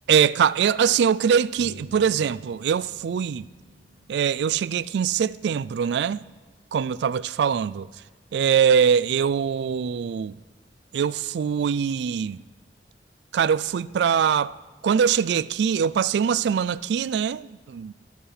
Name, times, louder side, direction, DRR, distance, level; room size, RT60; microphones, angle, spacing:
voice 1, 0.1-3.5 4.1-6.3 6.7-7.9 8.3-10.4 10.9-12.4 13.3-14.6 14.8-17.9, right 7 dB, 65° right, 0.3 m, -22 dB
Bass guitar, 1.6-5.4, right 1 dB, 85° right, 1.4 m, -49 dB
13.0 x 8.4 x 5.6 m
head